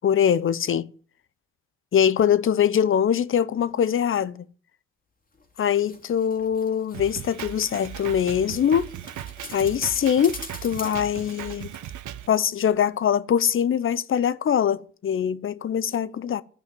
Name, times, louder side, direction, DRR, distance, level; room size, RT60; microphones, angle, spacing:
voice 1, 0.0-0.9 1.9-4.4 5.6-8.9 9.5-11.7 12.3-16.4, left 8 dB, 45° left, 0.7 m, -23 dB
sound 1, 5.3-12.3 12.6-12.7, left 3 dB, 30° left, 2.3 m, -44 dB
Drum kit, 6.9-12.3, right 12 dB, 75° right, 0.9 m, -38 dB
12.5 x 5.6 x 9.2 m
cardioid pair, 90°, 30 cm